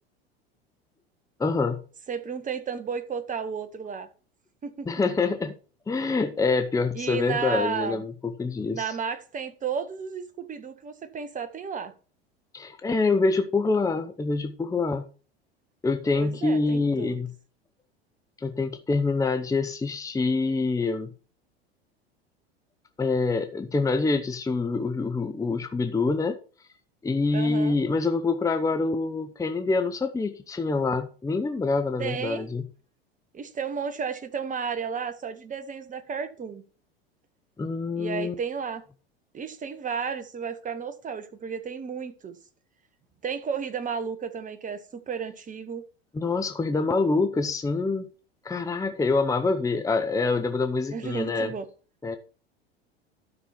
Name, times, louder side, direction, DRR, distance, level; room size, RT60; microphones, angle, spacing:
voice 1, 1.4-1.8 4.9-5.5 5.9-8.9 12.5-15.1 15.8-17.3 18.4-21.1 23.0-26.4 27.0-32.6 37.6-38.3 46.1-48.1 48.4-51.5 52.0-52.2, left 3 dB, 10° left, 1.0 m, -26 dB
voice 2, 2.1-4.1 4.6-4.9 6.9-8.0 8.7-11.9 16.1-17.2 27.3-27.8 32.0-32.5 33.3-36.6 38.0-38.8 39.3-42.4 43.2-45.8 50.9-51.6, right 6 dB, 25° right, 1.7 m, -33 dB
12.5 x 6.1 x 4.5 m
figure-of-eight pair, 80°, 31 cm